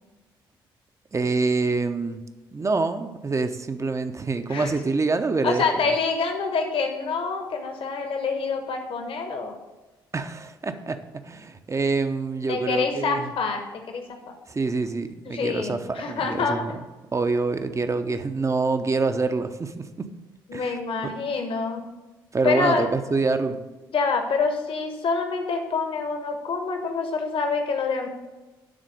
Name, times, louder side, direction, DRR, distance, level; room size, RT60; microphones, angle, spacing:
voice 1, 1.1-2.2 2.5-5.6 10.1-13.3 14.5-16.7 17.1-20.1 20.5-21.1 22.3-23.6, right 3 dB, 25° right, 9 dB, 0.8 m, -26 dB
voice 2, 5.4-9.6 12.5-14.4 15.2-16.6 20.5-21.8 22.4-22.9 23.9-28.1, left 4 dB, 50° left, 5 dB, 1.3 m, -26 dB
11.5 x 4.1 x 6.4 m, 1.2 s
figure-of-eight pair, 45°, 12 cm